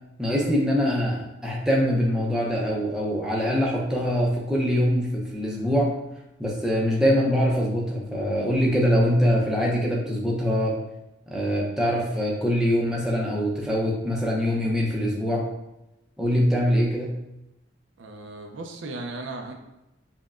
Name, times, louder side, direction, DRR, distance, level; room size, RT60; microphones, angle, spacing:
voice 1, 0.2-5.9 6.4-10.8 11.3-15.5 16.2-17.2, equal, 5° right, -4 dB, 0.5 m, -23 dB
voice 2, 18.0-19.5, right 2 dB, 70° right, 3 dB, 0.4 m, -36 dB
5.4 x 2.1 x 2.4 m, 0.91 s
head